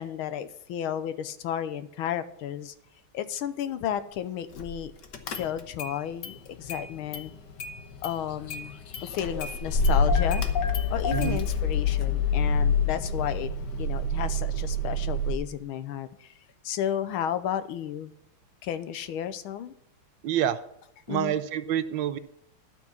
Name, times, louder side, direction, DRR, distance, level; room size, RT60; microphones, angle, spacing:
voice 1, 0.0-2.7 3.1-4.9 5.4-7.3 8.0-8.7 9.0-10.4 10.9-13.5 13.8-16.3 16.6-18.1 18.6-19.7 21.1-21.3, left 10 dB, 90° left, 13 dB, 1.6 m, -32 dB
Car / Engine starting, 4.6-4.8 5.1-5.9 6.2-7.3 7.6-15.4, left 3 dB, 60° left, 1.6 m, -27 dB
voice 2, 20.2-20.6 21.1-22.2, right 10 dB, 70° right, 13 dB, 1.3 m, -27 dB
11.5 x 6.2 x 7.2 m, 0.73 s
omnidirectional pair, 2.3 m